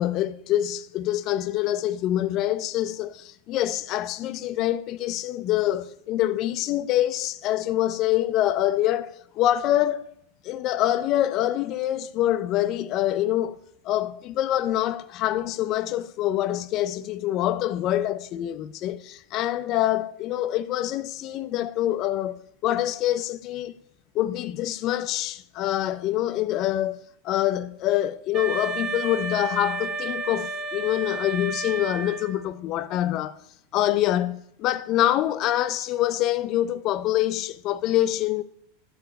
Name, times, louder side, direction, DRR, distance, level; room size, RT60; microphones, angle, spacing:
voice 1, 0.0-10.1 10.4-13.6 13.8-23.8 24.1-33.4 33.7-38.4, left 13 dB, 40° left, 0.4 m, -25 dB
Wind instrument woodwind instrument, 28.3-32.5, right 3 dB, 25° right, 0.9 m, -32 dB
12.5 x 4.6 x 7.6 m
supercardioid pair, 140°, 0 cm